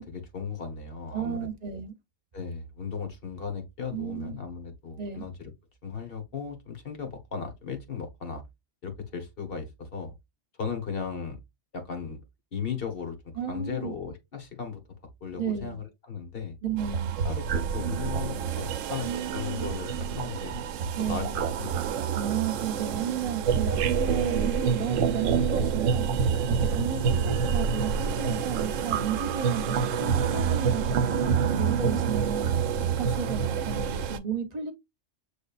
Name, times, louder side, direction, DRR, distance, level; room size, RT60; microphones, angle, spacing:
voice 1, 0.0-1.4 2.3-5.5 5.8-8.4 8.8-10.1 10.6-11.4 11.7-12.2 12.5-13.2 13.5-14.8 15.2-16.6 17.2-19.1 19.3-20.5 21.0-22.0, left 6 dB, 50° left, 1.4 m, -36 dB
voice 2, 1.1-1.9 3.9-4.4 5.0-5.2 13.4-13.9 15.4-15.8 16.6-17.1 19.0-19.7 21.0-21.3 22.1-34.7, right 7 dB, 35° right, 0.9 m, -33 dB
sound 1, 16.8-34.2, right 7 dB, 85° right, 0.9 m, -27 dB
6.2 x 3.4 x 2.4 m
omnidirectional pair, 1.3 m